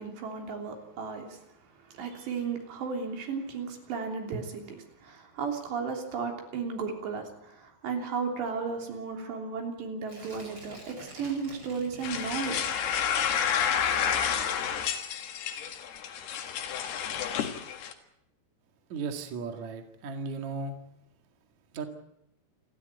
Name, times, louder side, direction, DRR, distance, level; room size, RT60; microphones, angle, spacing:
voice 1, 0.0-1.4 1.9-12.8, right 5 dB, 75° right, 2 dB, 5.5 m, -34 dB
Tearing, 10.0-15.2 15.5-15.6, right 2 dB, 25° right, 6.2 m, -49 dB
sound 1, 12.0-17.9, left 8 dB, 65° left, 3.6 m, -30 dB
voice 2, 18.9-20.7 21.7-21.9, right 4 dB, 50° right, 4 dB, 2.7 m, -35 dB
29.0 x 12.5 x 9.3 m, 0.82 s
omnidirectional pair, 5.1 m